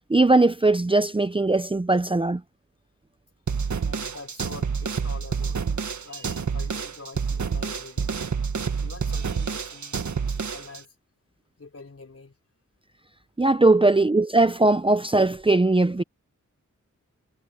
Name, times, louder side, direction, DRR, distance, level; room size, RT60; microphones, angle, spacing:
voice 1, 0.1-2.4 13.4-16.0, right 2 dB, 15° right, 0.7 m, -20 dB
sound 1, 3.5-10.8, right 6 dB, 70° right, 1.7 m, -28 dB
voice 2, 3.8-5.6 6.0-8.1 8.8-10.0 10.3-10.9 11.6-12.3 13.8-13.9, left 3 dB, 50° left, 5.1 m, -45 dB
wide cardioid pair, 90°, 30 cm